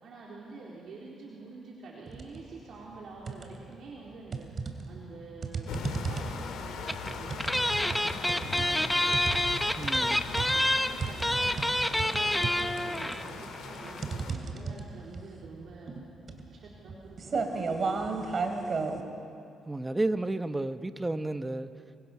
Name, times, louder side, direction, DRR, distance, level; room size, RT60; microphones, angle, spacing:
voice 1, 0.0-4.5 4.9-9.2 9.8-15.9 16.5-18.5, right 3 dB, 65° right, -4 dB, 4.0 m, -47 dB
sound 1, 2.1-2.4 2.8-3.8 4.3-19.0, right 4 dB, 45° right, 2.9 m, -35 dB
sound 2, 5.7-14.3, left 6 dB, 80° left, 2.7 m, -41 dB
sound 3, 6.9-7.1 7.4-13.3 13.5-13.6 13.8-14.0, left 1 dB, 5° left, 1.2 m, -27 dB
voice 2, 9.8-10.2 19.7-21.7, right 2 dB, 15° right, 10 dB, 1.1 m, -31 dB
28.5 x 24.5 x 6.1 m, 2.6 s
cardioid pair, 90°, 0 cm